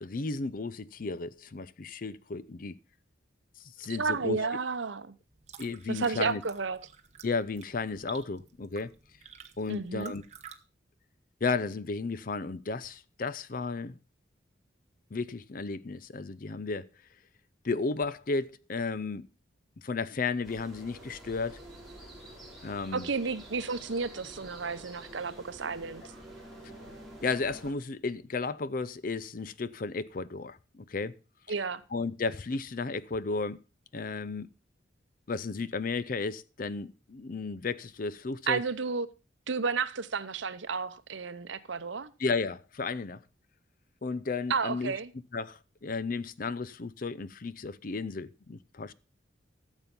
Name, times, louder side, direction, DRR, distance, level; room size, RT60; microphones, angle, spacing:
voice 1, 0.0-2.8 3.8-4.5 5.6-6.4 7.2-8.9 9.6-10.2 11.4-14.0 15.1-16.9 17.6-19.3 19.8-21.6 22.6-23.1 27.2-31.2 31.9-33.6 33.9-34.5 35.3-38.6 42.2-43.2 44.0-44.9 45.3-48.9, left 4 dB, 45° left, 0.5 m, -33 dB
voice 2, 4.0-5.1 5.9-6.8 9.7-10.1 22.9-26.0 31.5-31.8 38.5-39.1 39.5-42.1 44.5-45.1, right 4 dB, 70° right, 0.9 m, -32 dB
sound 1, 5.2-10.6, right 7 dB, 35° right, 1.1 m, -51 dB
sound 2, 20.4-27.7, right 1 dB, ahead, 3.6 m, -48 dB
13.5 x 7.3 x 5.3 m
head